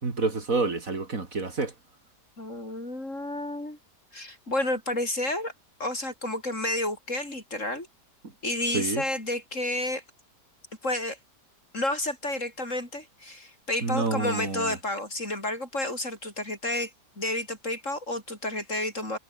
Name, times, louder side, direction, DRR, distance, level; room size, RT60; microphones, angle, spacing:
voice 1, 0.0-1.7 8.7-9.0 13.8-14.7, right 3 dB, 50° right, 3.1 m, -28 dB
voice 2, 2.4-3.8 4.1-5.5 5.8-7.9 8.4-10.0 10.8-11.2 11.7-16.9 17.2-19.2, left 1 dB, 45° left, 7.5 m, -30 dB
omnidirectional pair, 1.8 m